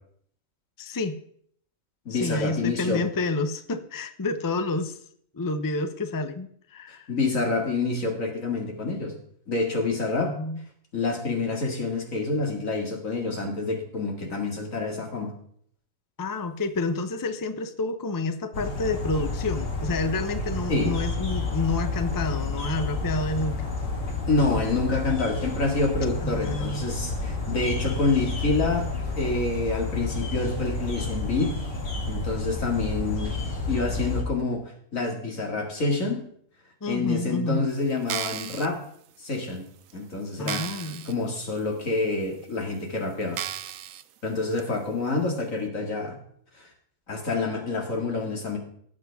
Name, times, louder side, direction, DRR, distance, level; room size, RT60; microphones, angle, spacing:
voice 1, 0.8-1.1 2.1-5.0 5.3-7.1 10.2-10.6 16.2-23.7 26.2-26.8 36.8-37.6 40.4-41.1, left 3 dB, 20° left, 10 dB, 0.5 m, -29 dB
voice 2, 2.1-3.0 6.9-9.1 9.5-10.4 10.9-15.3 20.7-21.0 24.3-28.9 29.2-31.5 32.1-33.4 33.7-36.3 36.9-38.8 39.2-39.6 39.9-43.4 44.2-46.1 46.6-46.7 47.1-48.6, left 3 dB, 85° left, 1 dB, 2.7 m, -27 dB
sound 1, 18.5-34.2, left 3 dB, 65° left, 2.4 m, -30 dB
sound 2, 38.0-38.7 39.4-39.5 39.9-40.0 40.5-41.1 41.6-41.7 42.4-42.5 43.3-44.0 44.6-44.7, right 11 dB, 85° right, 1.0 m, -34 dB
17.5 x 7.5 x 3.5 m, 0.63 s
omnidirectional pair, 1.4 m